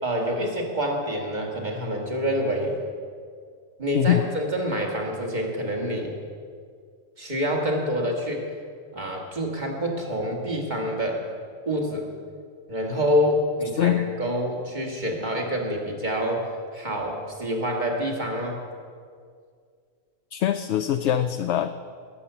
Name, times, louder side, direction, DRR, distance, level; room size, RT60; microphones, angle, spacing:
voice 1, 0.0-2.8 3.8-6.1 7.2-8.4 8.9-11.2 11.7-12.1 12.7-16.5 16.7-18.6 21.0-21.2, equal, 35° right, 0 dB, 2.3 m, -27 dB
voice 2, 13.8-14.1 20.3-21.7, left 11 dB, 65° left, 9 dB, 0.8 m, -23 dB
20.0 x 8.5 x 7.0 m, 2.1 s
omnidirectional pair, 1.4 m